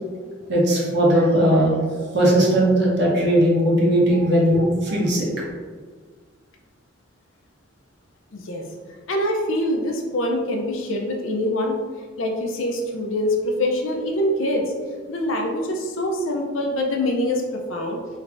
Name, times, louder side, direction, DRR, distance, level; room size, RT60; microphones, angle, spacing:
voice 1, 0.5-1.7 2.0-5.3, right 1 dB, 55° right, -4 dB, 0.9 m, -18 dB
voice 2, 8.3-8.6 9.1-11.8 12.2-14.6 15.1-17.4 17.7-18.0, left 1 dB, 75° left, 1 dB, 0.6 m, -24 dB
3.2 x 2.6 x 3.3 m, 1.5 s
head